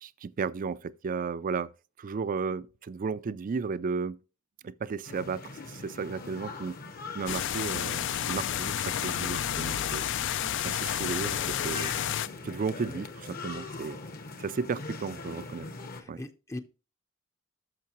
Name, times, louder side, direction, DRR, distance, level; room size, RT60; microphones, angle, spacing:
voice 1, 0.0-1.7 2.0-4.2 4.6-6.8 7.1-10.0 10.6-11.9 12.4-14.0 14.4-15.7 16.1-16.2, right 5 dB, 40° right, 0.4 m, -34 dB
sound 1, 5.1-16.0, left 3 dB, 45° left, 1.0 m, -42 dB
sound 2, 7.3-12.3, left 10 dB, 65° left, 0.4 m, -31 dB
voice 2, 16.0-16.6, left 1 dB, 15° left, 0.5 m, -40 dB
12.5 x 5.6 x 3.0 m
head